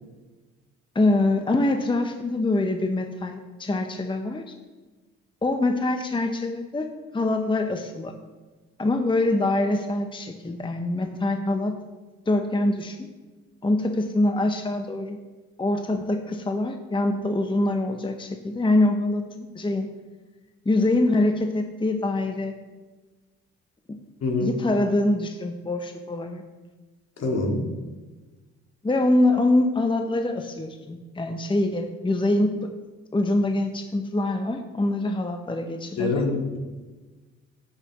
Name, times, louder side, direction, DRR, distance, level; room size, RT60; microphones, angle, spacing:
voice 1, 0.9-4.6 5.4-8.1 8.8-11.8 12.3-13.1 13.6-15.2 15.6-19.2 19.5-19.9 20.6-22.5 23.9-24.0 24.4-26.4 28.8-32.7 33.1-36.2, left 2 dB, 15° left, 5 dB, 0.8 m, -24 dB
voice 2, 24.2-24.5 27.2-27.6 36.0-36.6, left 3 dB, 55° left, 1 dB, 2.2 m, -25 dB
9.0 x 8.2 x 3.1 m, 1.2 s
hypercardioid pair, 50°, 32 cm